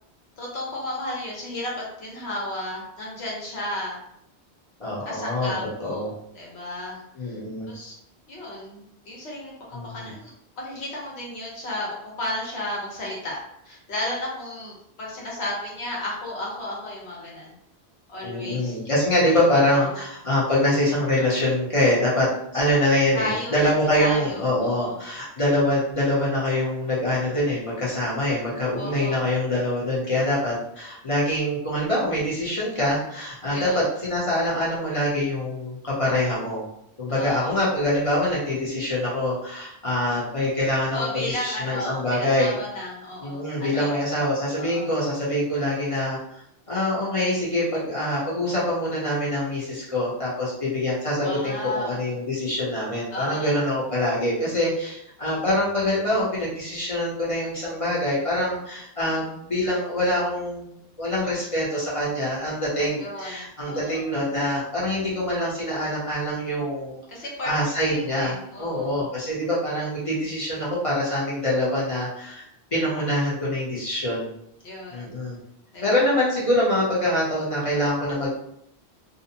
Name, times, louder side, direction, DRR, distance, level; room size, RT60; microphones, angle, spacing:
voice 1, 0.4-4.0 5.0-7.4 7.7-8.0 8.3-17.6 18.1-18.8 19.6-19.7 23.1-23.7 24.0-25.0 28.8-29.2 33.5-33.8 37.1-37.5 40.9-44.0 44.6-44.9 51.2-52.0 53.1-53.6 63.0-64.0 67.1-69.1 74.6-75.1 75.7-76.0, left 1 dB, 75° left, -3 dB, 1.1 m, -34 dB
voice 2, 4.8-5.5 5.8-6.1 7.2-7.7 9.7-10.1 18.2-36.6 37.0-42.5 43.2-46.2 46.7-67.0 67.4-74.3 74.9-75.4 75.8-78.4, left 1 dB, 35° left, -6 dB, 0.7 m, -25 dB
2.5 x 2.1 x 2.7 m, 0.75 s
omnidirectional pair, 1.1 m